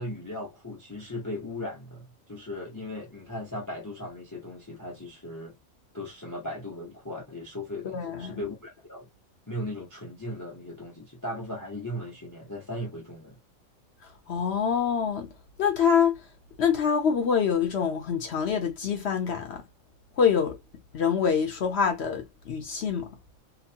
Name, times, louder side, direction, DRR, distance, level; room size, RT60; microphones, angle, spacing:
voice 1, 0.0-5.6 5.9-9.1 9.5-13.4, left 1 dB, 20° left, 0.5 m, -37 dB
voice 2, 7.8-8.4 14.3-15.3 15.6-16.2 16.6-19.6 20.2-20.6 20.9-23.1, left 7 dB, 60° left, 0.8 m, -25 dB
2.9 x 2.1 x 2.6 m
omnidirectional pair, 1.4 m